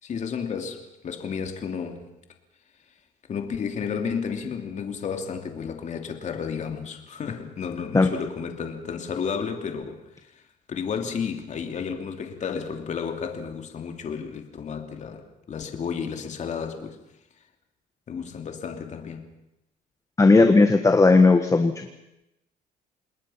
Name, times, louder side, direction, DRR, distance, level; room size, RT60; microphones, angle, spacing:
voice 1, 0.0-2.1 3.3-10.3 10.7-17.0 18.1-19.3, left 6 dB, 45° left, 2.9 m, -32 dB
voice 2, 20.2-21.9, left 3 dB, 20° left, 1.5 m, -16 dB
28.5 x 20.0 x 5.8 m
cardioid pair, 110°, 17 cm